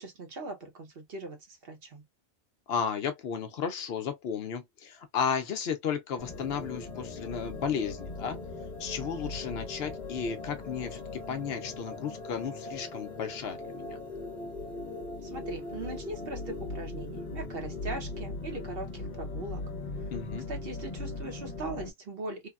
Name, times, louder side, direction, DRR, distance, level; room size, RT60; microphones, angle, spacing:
voice 1, 0.0-2.0 15.2-19.6 20.5-22.5, right 2 dB, 55° right, 1.0 m, -40 dB
voice 2, 2.7-8.4 8.8-14.0 20.1-20.5, left 7 dB, 65° left, 0.8 m, -34 dB
sound 1, 6.2-21.9, left 2 dB, 45° left, 1.0 m, -39 dB
3.3 x 2.1 x 2.3 m
omnidirectional pair, 1.2 m